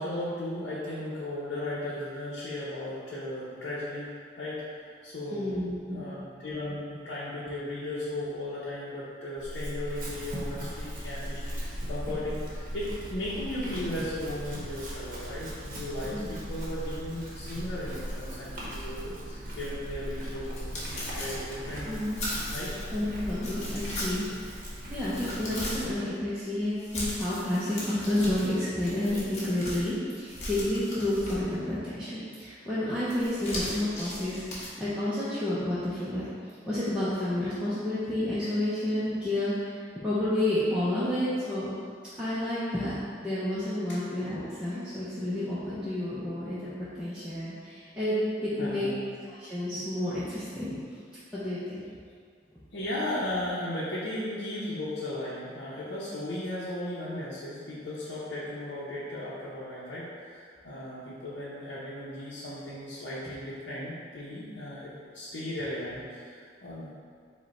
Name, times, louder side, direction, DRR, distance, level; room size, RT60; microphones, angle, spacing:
voice 1, 0.0-4.1 4.4-22.0 22.5-22.7 48.6-49.1 52.7-66.9, left 1 dB, 75° left, -9 dB, 0.7 m, -36 dB
voice 2, 5.3-6.0 16.1-16.4 21.9-22.2 22.9-24.2 24.7-36.3 36.7-41.7 42.2-48.9 49.3-50.8 51.3-51.9, left 1 dB, 5° right, -12 dB, 0.5 m, -30 dB
Chewing mastication / Livestock farm animals working animals, 9.4-25.9, equal, 45° right, 0.8 m, -38 dB
sound 1, 20.1-22.9 23.4-24.4 24.8-26.0 26.8-29.9 30.3-31.7 33.1-34.7, left 1 dB, 35° left, 0.9 m, -38 dB
5.0 x 2.2 x 4.1 m, 2.1 s
head